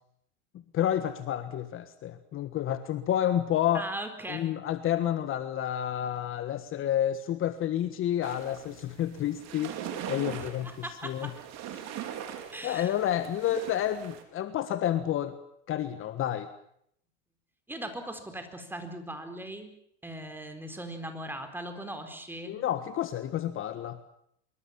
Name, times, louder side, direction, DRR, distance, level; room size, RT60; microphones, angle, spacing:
voice 1, 0.7-3.9 4.3-9.7 10.1-10.7 11.0-11.3 11.7-11.8 12.6-15.4 15.7-16.5 22.5-24.0, left 11 dB, 35° left, 11 dB, 1.4 m, -29 dB
voice 2, 3.7-4.5 10.3-11.3 12.5-12.9 17.7-19.7 20.0-22.5, right 1 dB, 5° right, 7 dB, 4.4 m, -39 dB
sound 1, 8.2-14.2, right 9 dB, 45° right, 4.5 m, -41 dB
25.5 x 23.0 x 7.3 m, 0.72 s
supercardioid pair, 120°, 36 cm